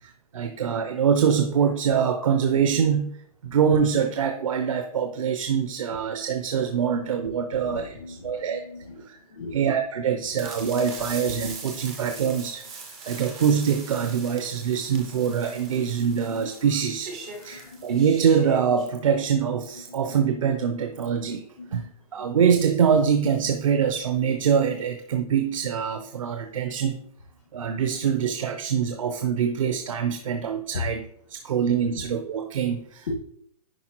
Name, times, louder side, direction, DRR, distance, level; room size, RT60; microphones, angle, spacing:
voice 1, 0.0-3.1 3.4-8.6 9.1-9.2 9.5-12.7 13.1-17.1 17.4-21.4 21.7-27.0 27.5-33.1, right 7 dB, 55° right, 6 dB, 0.6 m, -24 dB
voice 2, 7.5-9.7 11.7-12.1 17.3-17.9 19.9-20.0 21.6-21.9 22.2-22.4 27.5-27.7 30.7-30.8 33.1-33.2, left 4 dB, 90° left, 0 dB, 1.6 m, -39 dB
sound 1, 10.4-18.9, right 4 dB, 10° right, 0.3 m, -41 dB
10.0 x 4.2 x 2.9 m, 0.68 s
hypercardioid pair, 175°, 20 cm